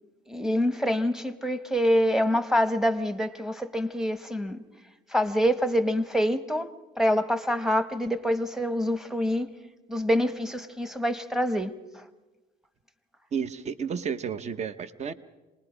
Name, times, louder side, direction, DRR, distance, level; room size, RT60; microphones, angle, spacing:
voice 1, 0.3-4.6 5.1-6.7 7.0-9.5 9.9-11.7, equal, 5° right, 1.0 m, -26 dB
voice 2, 13.3-15.1, right 7 dB, 40° right, 0.9 m, -32 dB
27.0 x 20.0 x 5.0 m
cardioid pair, 110°, 17 cm